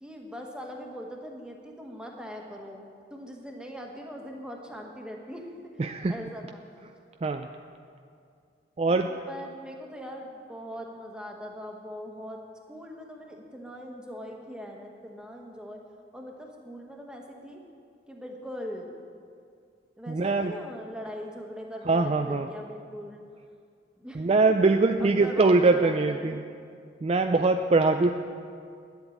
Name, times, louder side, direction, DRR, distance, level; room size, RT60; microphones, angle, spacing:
voice 1, 0.0-6.6 8.9-12.4 12.7-15.8 16.1-17.6 18.1-19.0 20.0-23.2 24.0-26.4, equal, 5° right, 1 dB, 1.3 m, -41 dB
voice 2, 5.8-6.2 7.2-7.5 8.8-9.1 20.1-20.5 21.9-22.5 24.2-26.4 27.0-28.1, right 3 dB, 35° right, 6 dB, 0.4 m, -22 dB
11.0 x 8.1 x 8.5 m, 2.3 s
head